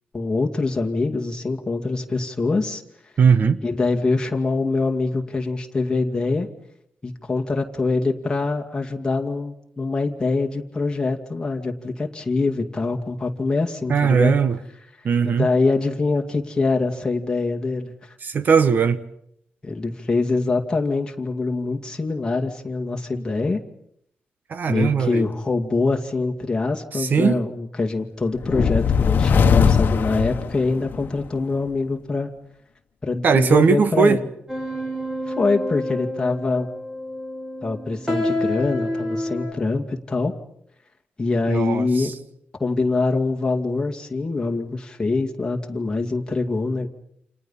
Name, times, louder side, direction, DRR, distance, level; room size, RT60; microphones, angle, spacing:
voice 1, 0.1-2.8 3.6-6.5 7.0-14.3 15.2-18.1 19.6-23.6 24.7-32.3 33.0-34.2 35.3-36.7 37.6-40.3 41.2-42.1 42.6-46.9, left 3 dB, 20° left, 2.3 m, -24 dB
voice 2, 3.2-3.6 13.9-14.6 15.0-15.5 18.2-19.0 24.5-25.3 26.9-27.4 33.2-34.2 41.5-42.1, right 6 dB, 50° right, 1.2 m, -19 dB
sound 1, 28.4-31.1, left 6 dB, 60° left, 1.3 m, -19 dB
sound 2, 34.5-39.5, left 1 dB, 10° right, 6.6 m, -28 dB
29.5 x 28.0 x 5.7 m
wide cardioid pair, 160°, 4 cm